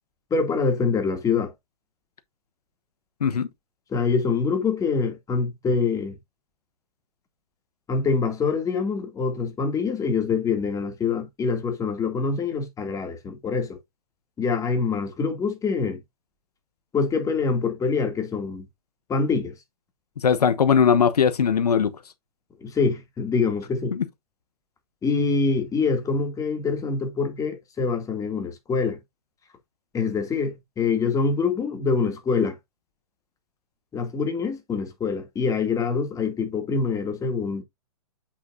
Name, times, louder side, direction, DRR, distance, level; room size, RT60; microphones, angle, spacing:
voice 1, 0.3-1.5 3.9-6.2 7.9-13.8 14.4-16.0 16.9-18.7 19.1-19.5 22.6-24.0 25.0-29.0 29.9-32.6 33.9-37.6, left 4 dB, 15° left, 2.3 m, -25 dB
voice 2, 20.2-21.9, left 7 dB, 85° left, 1.0 m, -19 dB
8.1 x 6.0 x 2.6 m
hypercardioid pair, 125°, 20 cm